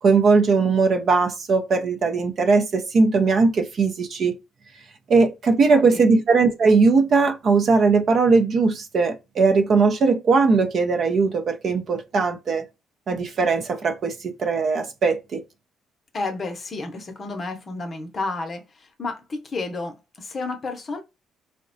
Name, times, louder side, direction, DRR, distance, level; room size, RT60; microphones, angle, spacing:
voice 1, 0.0-4.3 5.1-12.6 13.1-15.4, right 4 dB, 50° right, 0.5 m, -19 dB
voice 2, 5.7-6.2 16.1-18.6 19.0-21.0, left 3 dB, 35° left, 0.7 m, -31 dB
3.8 x 2.1 x 2.6 m
cardioid pair, 120°, 0 cm